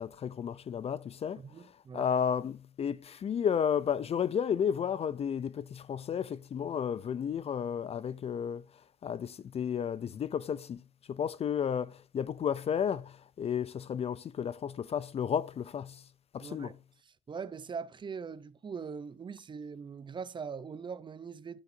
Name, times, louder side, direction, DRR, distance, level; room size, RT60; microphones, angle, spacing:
voice 1, 0.0-1.4 1.9-8.6 9.0-10.8 11.1-16.0 16.3-16.7, left 8 dB, 35° left, 0.4 m, -32 dB
voice 2, 1.4-2.1 16.4-16.7 17.0-21.6, right 6 dB, 30° right, 0.6 m, -41 dB
11.0 x 7.9 x 2.6 m
cardioid pair, 110°, 17 cm